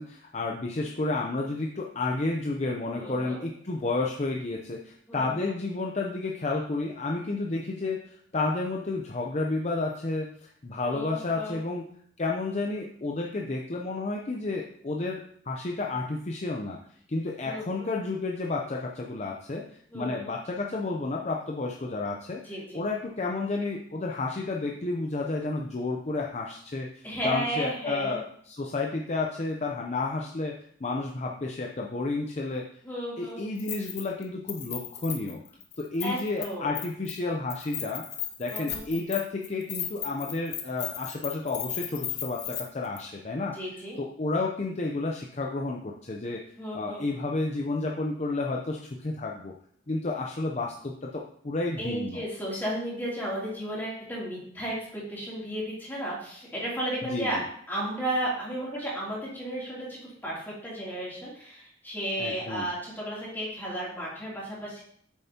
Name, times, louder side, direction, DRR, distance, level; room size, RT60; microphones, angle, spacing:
voice 1, 0.0-11.9 12.2-16.8 17.1-19.7 19.9-22.4 22.7-32.7 33.2-35.4 35.8-38.0 38.4-43.6 44.0-46.5 46.7-49.5 49.9-52.2 57.0-57.4 62.2-62.7, left 3 dB, 35° left, 0 dB, 0.6 m, -31 dB
voice 2, 2.9-3.4 5.1-5.5 10.9-11.6 17.4-17.9 19.9-20.3 22.4-22.8 27.0-28.2 32.8-33.4 36.0-36.8 38.5-38.8 43.5-44.0 46.6-47.0 51.8-57.4 57.7-64.8, right 1 dB, 10° left, -7 dB, 2.9 m, -34 dB
Keys jangling, 33.6-34.2 34.5-36.5 36.8-37.2 37.5-42.6 43.0-43.1, left 10 dB, 60° left, 1.0 m, -36 dB
8.1 x 6.8 x 2.8 m, 0.62 s
head